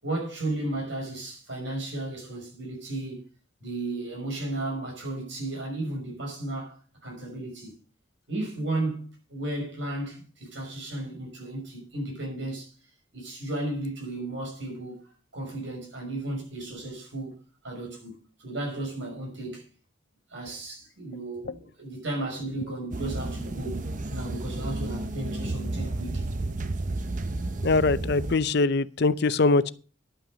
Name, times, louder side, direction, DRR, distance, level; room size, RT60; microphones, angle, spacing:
voice 1, 0.0-3.2 3.6-6.8 7.0-7.7 8.3-12.7 13.1-15.0 15.3-17.3 17.6-19.6 20.3-26.2, right 2 dB, 70° right, 5.9 m, -34 dB
sound 1, 22.9-28.4, right 2 dB, 40° right, 0.8 m, -32 dB
voice 2, 27.6-29.7, left 3 dB, 55° left, 0.6 m, -22 dB
11.5 x 9.0 x 5.2 m
head